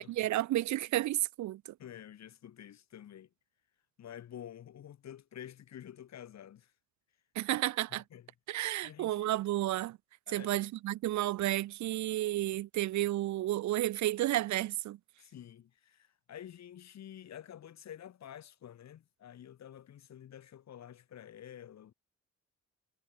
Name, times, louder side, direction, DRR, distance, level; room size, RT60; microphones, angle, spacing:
voice 1, 0.1-1.7 7.4-8.0 8.5-10.0 10.3-15.0, right 15 dB, 70° right, 0.6 m, -32 dB
voice 2, 1.8-3.3 4.0-6.7 7.9-8.3 8.8-9.3 10.3-10.6 15.2-21.9, left 10 dB, 65° left, 3.1 m, -49 dB
cardioid pair, 90°, 30 cm